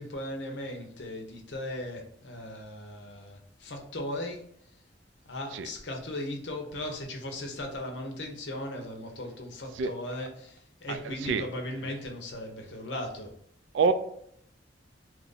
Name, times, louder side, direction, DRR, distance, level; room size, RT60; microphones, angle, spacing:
voice 1, 0.0-4.4 5.3-13.3, left 1 dB, 75° left, 2 dB, 0.8 m, -37 dB
voice 2, 10.9-11.4 13.7-13.9, right 5 dB, 80° right, 9 dB, 0.3 m, -27 dB
2.9 x 2.5 x 3.8 m, 0.69 s
head